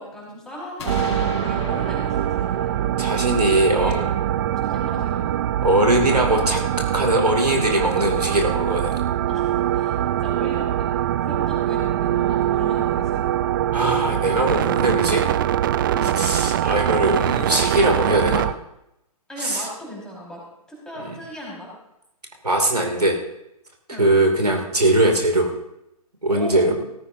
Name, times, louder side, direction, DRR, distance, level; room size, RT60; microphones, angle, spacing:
voice 1, 0.0-2.8 3.3-4.1 4.6-5.3 9.3-10.9 11.2-13.2 15.9-16.2 19.3-20.4 20.7-21.7 23.9-24.3 26.3-26.7, equal, 5° left, -5 dB, 4.8 m, -37 dB
sound 1, 0.8-4.6, left 4 dB, 45° left, 3.2 m, -37 dB
sound 2, 0.9-18.5, right 11 dB, 35° right, 0.5 m, -23 dB
voice 2, 3.0-3.9 5.6-6.6 6.9-9.1 13.7-15.2 16.2-18.5 19.4-19.7 21.0-21.1 22.4-23.2 24.0-25.5 26.2-26.7, right 1 dB, 85° right, 2 dB, 2.6 m, -20 dB
17.5 x 15.0 x 2.7 m, 0.84 s
figure-of-eight pair, 125°, 20 cm